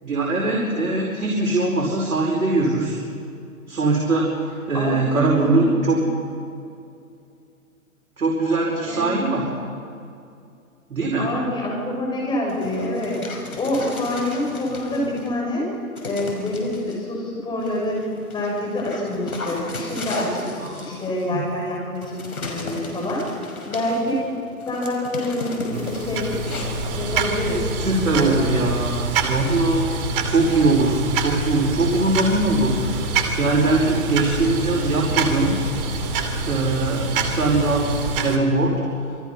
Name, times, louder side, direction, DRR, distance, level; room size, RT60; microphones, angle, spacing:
voice 1, 0.0-3.0 3.7-4.4 4.7-6.0 8.2-9.5 10.9-11.3 20.6-21.4 27.8-29.9 30.3-33.1 33.4-35.6 36.5-37.9 38.2-38.8, right 2 dB, 85° right, -3 dB, 5.1 m, -21 dB
voice 2, 4.7-5.7 8.9-9.1 11.2-13.2 13.6-15.7 16.0-18.0 18.3-24.2 24.6-26.4 27.0-27.7 28.1-28.5, left 1 dB, 10° left, -2 dB, 7.0 m, -26 dB
Dog, 12.5-15.4 15.9-17.0 17.6-28.0, left 2 dB, 75° left, 5.6 m, -36 dB
sound 1, 25.7-38.4, right 3 dB, 40° right, 2.8 m, -26 dB
28.0 x 23.0 x 5.8 m, 2.5 s
hypercardioid pair, 140°, 44 cm